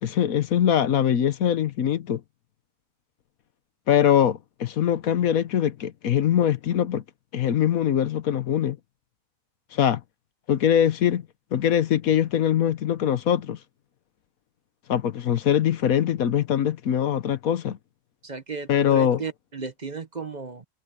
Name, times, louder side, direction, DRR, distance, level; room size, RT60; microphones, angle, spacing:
voice 1, 0.0-2.2 3.9-7.0 7.3-8.8 9.7-10.0 10.5-11.3 11.5-13.6 14.9-17.8 18.7-19.2, left 9 dB, 85° left, 1.4 m, -22 dB
voice 2, 18.2-20.6, right 5 dB, 35° right, 1.3 m, -35 dB
omnidirectional pair, 1.4 m